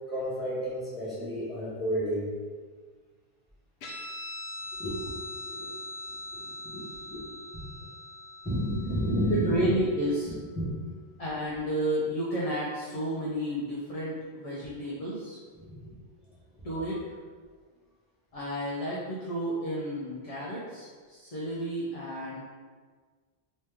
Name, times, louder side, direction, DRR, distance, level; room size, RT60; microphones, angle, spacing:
voice 1, 0.1-2.3 4.7-5.8 6.3-7.2 7.5-7.6 8.4-9.6 10.6-10.8 15.6-15.9, equal, ahead, -10 dB, 1.4 m, -32 dB
Guitar, 3.8-10.7, left 2 dB, 80° left, 0.9 m, -42 dB
voice 2, 9.3-10.3 11.2-15.4 16.6-17.0 18.3-22.4, right 1 dB, 40° left, -7 dB, 0.6 m, -31 dB
3.2 x 3.0 x 3.3 m, 1.5 s
omnidirectional pair, 1.1 m